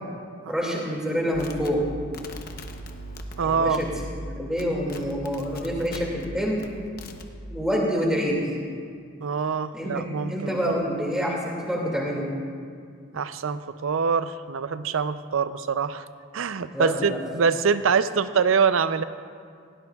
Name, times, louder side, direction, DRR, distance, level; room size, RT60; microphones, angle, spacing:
voice 1, 0.5-1.9 3.4-3.9 4.2-6.6 7.5-8.5 9.7-12.3 16.7-17.2, equal, 5° right, -3 dB, 2.2 m, -27 dB
sound 1, 1.3-4.3 4.6-6.3 6.6-7.3, equal, 45° left, 0.9 m, -39 dB
voice 2, 3.4-3.8 9.2-10.8 13.1-16.1 16.3-19.0, right 5 dB, 85° right, 13 dB, 0.5 m, -24 dB
19.0 x 17.5 x 2.4 m, 2.2 s
head